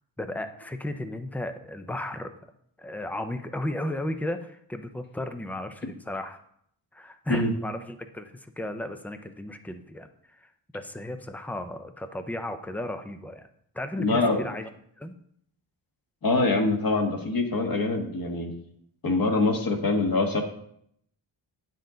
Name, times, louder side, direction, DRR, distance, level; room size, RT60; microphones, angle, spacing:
voice 1, 0.2-2.3 2.8-6.4 6.9-13.5 13.7-14.7 15.0-15.1, left 1 dB, 5° left, 8 dB, 0.5 m, -34 dB
voice 2, 14.0-14.4 16.2-18.5 19.0-20.4, left 3 dB, 45° left, 3 dB, 1.5 m, -24 dB
10.5 x 7.7 x 3.8 m, 0.70 s
wide cardioid pair, 170°, 48 cm